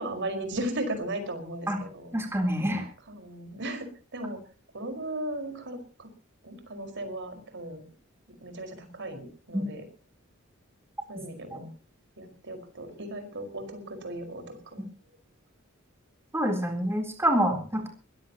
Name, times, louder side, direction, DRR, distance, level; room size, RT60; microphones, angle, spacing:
voice 1, 0.0-2.1 3.1-4.4 4.7-6.1 6.4-7.8 8.4-9.9 11.1-11.7 12.2-14.9, right 1 dB, 60° right, 6 dB, 5.3 m, -36 dB
voice 2, 2.1-2.8 9.5-9.6 11.5-11.6 16.3-17.9, equal, 10° right, 3 dB, 3.8 m, -26 dB
22.5 x 16.5 x 3.0 m, 0.36 s
head